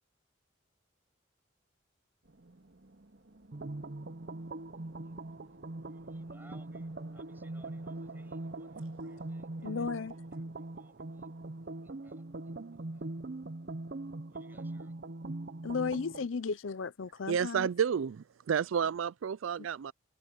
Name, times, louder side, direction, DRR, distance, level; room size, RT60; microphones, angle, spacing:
sound 1, 2.2-12.8, right 2 dB, 70° right, 1.9 m, -60 dB
sound 2, 3.5-16.3, right 2 dB, 55° right, 0.7 m, -42 dB
voice 1, 5.8-11.3 11.8-13.1 14.3-15.0, right 1 dB, 10° right, 6.9 m, -65 dB
voice 2, 9.6-10.1 15.6-17.7, left 5 dB, 80° left, 0.6 m, -34 dB
voice 3, 17.3-19.9, right 7 dB, 85° right, 0.4 m, -31 dB
head